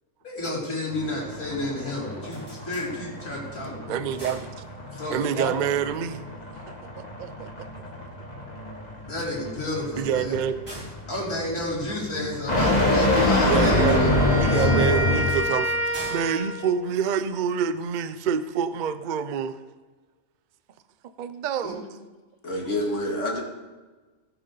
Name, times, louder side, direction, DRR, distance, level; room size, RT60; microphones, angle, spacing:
voice 1, 0.2-3.9 4.9-5.5 9.1-10.4 11.1-14.1 14.5-14.7 21.6-21.7, left 1 dB, 80° left, -4 dB, 4.3 m, -31 dB
sound 1, 0.9-15.5, left 1 dB, 30° left, 1.8 m, -26 dB
sound 2, 2.2-3.5 3.9-5.2 9.0-12.4 14.5-17.6, right 1 dB, 35° right, 4.6 m, -46 dB
voice 2, 3.9-4.5 5.1-6.2 7.0-7.8 10.0-10.6 13.4-14.0 14.4-19.6 21.2-21.8, right 7 dB, 60° right, 12 dB, 0.5 m, -27 dB
Wind instrument woodwind instrument, 13.4-16.8, left 1 dB, 85° right, 2.8 m, -29 dB
voice 3, 22.4-23.4, left 1 dB, 55° left, -1 dB, 2.3 m, -27 dB
18.5 x 6.6 x 4.0 m, 1.3 s
omnidirectional pair, 1.5 m